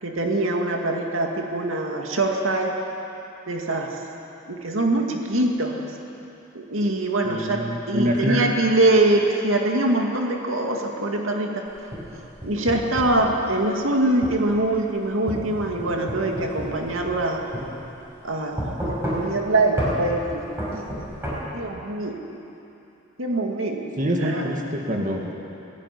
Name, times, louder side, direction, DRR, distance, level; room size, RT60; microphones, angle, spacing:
voice 1, 0.0-2.7 3.5-3.9 4.5-5.8 6.6-11.7 12.1-17.4 18.2-20.4 20.7-20.8 21.5-22.2 23.2-24.5, right 2 dB, 90° right, 1 dB, 2.2 m, -23 dB
voice 2, 7.2-8.4 24.0-25.3, equal, 40° right, 0 dB, 2.1 m, -25 dB
sound 1, 11.7-13.2 14.2-14.4 15.3-17.3 17.5-17.7 18.6-19.4 19.8-20.0 20.6-21.4, equal, 10° right, 5.7 m, -30 dB
18.0 x 16.0 x 9.9 m, 2.9 s
head